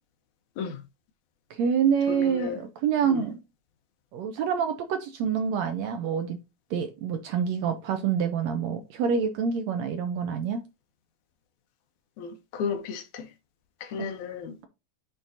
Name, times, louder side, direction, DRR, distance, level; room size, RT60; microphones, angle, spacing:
voice 1, 1.5-3.3 4.1-6.4 6.7-10.6, right 7 dB, 75° right, 1.7 m, -27 dB
voice 2, 2.1-2.6 3.0-3.2 12.2-13.3 13.8-14.6, left 6 dB, 75° left, 2.2 m, -34 dB
10.5 x 3.7 x 2.6 m
omnidirectional pair, 3.6 m